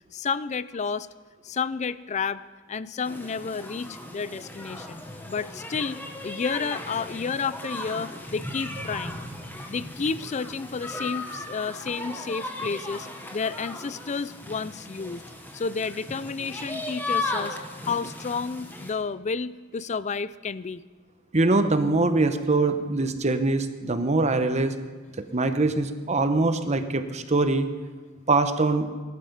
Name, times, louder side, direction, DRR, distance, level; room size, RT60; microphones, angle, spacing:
voice 1, 0.1-1.1 1.4-2.4 2.7-9.2 9.7-15.2 15.5-17.6 17.8-20.8, left 5 dB, 35° left, 17 dB, 0.4 m, -31 dB
sound 1, 3.0-18.9, left 2 dB, 10° left, 1.3 m, -36 dB
voice 2, 21.3-24.7 25.3-27.7 28.3-28.9, right 2 dB, 35° right, 9 dB, 0.9 m, -23 dB
19.5 x 12.0 x 5.2 m, 1.4 s
head